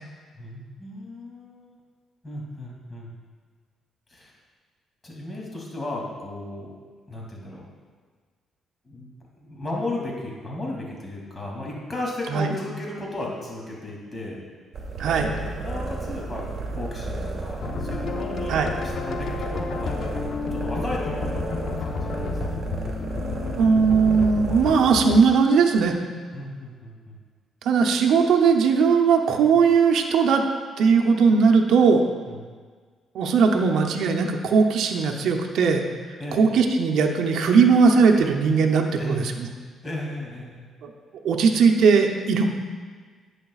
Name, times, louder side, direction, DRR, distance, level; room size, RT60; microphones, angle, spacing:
voice 1, 0.4-1.8 2.2-3.1 4.1-4.3 5.0-6.7 7.1-7.7 8.8-14.4 15.2-21.5 21.8-22.6 26.3-27.2 29.3-29.4 32.3-32.4 36.2-36.5 39.0-39.3 39.8-40.7 42.3-42.4, left 1 dB, 25° left, -3 dB, 2.7 m, -35 dB
sound 1, 14.7-24.7, right 3 dB, 50° right, 1.8 m, -32 dB
voice 2, 15.0-15.3 18.5-18.7 23.6-25.9 27.6-30.4 30.8-32.0 33.1-35.8 36.3-39.2 40.8-40.9 41.2-42.5, right 5 dB, 75° right, 3 dB, 0.7 m, -19 dB
sound 2, 17.6-25.7, left 5 dB, 60° left, 0.8 m, -32 dB
11.0 x 8.7 x 2.4 m, 1.5 s
cardioid pair, 90°, 0 cm